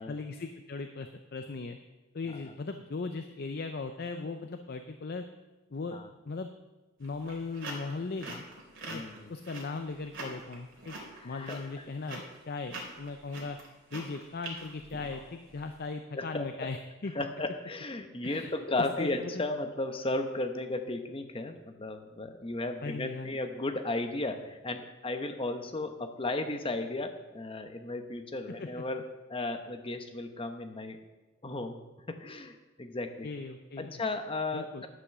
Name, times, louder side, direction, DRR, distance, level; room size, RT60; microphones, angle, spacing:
voice 1, 0.0-1.8 2.1-5.2 5.7-6.0 6.3-6.5 7.0-8.4 8.9-9.0 9.3-10.9 11.2-13.6 13.9-17.1 18.2-18.5 18.8-19.4 22.8-23.3 28.8-28.9 33.2-34.0 34.5-34.8, left 3 dB, 45° left, 7 dB, 0.5 m, -38 dB
sound 1, 7.0-15.6, right 2 dB, 60° right, 3.0 m, -44 dB
voice 2, 8.9-9.3 11.2-11.6 16.2-16.7 17.1-29.0 29.3-31.0 31.4-33.3 33.8-34.9, left 2 dB, 25° left, 6 dB, 0.9 m, -35 dB
11.0 x 6.1 x 6.7 m, 1.1 s
head